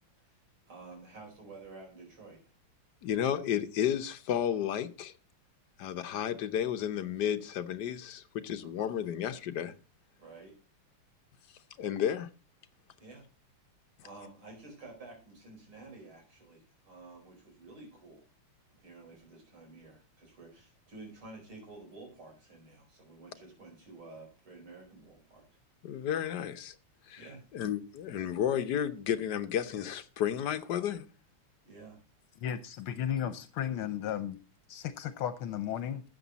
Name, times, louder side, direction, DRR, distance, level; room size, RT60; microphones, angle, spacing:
voice 1, 0.7-2.4 8.6-8.9 10.2-10.6 13.0-13.3 14.0-18.2 18.8-25.5 27.2-27.4 31.6-32.0, right 3 dB, 70° right, 5.6 m, -51 dB
voice 2, 3.0-5.1 5.8-9.7 11.8-12.3 25.8-26.7 27.1-27.2 27.5-31.0, left 9 dB, 60° left, 1.3 m, -32 dB
voice 3, 32.4-34.4 34.7-36.0, left 10 dB, 80° left, 1.6 m, -34 dB
13.0 x 7.9 x 4.0 m
omnidirectional pair, 2.4 m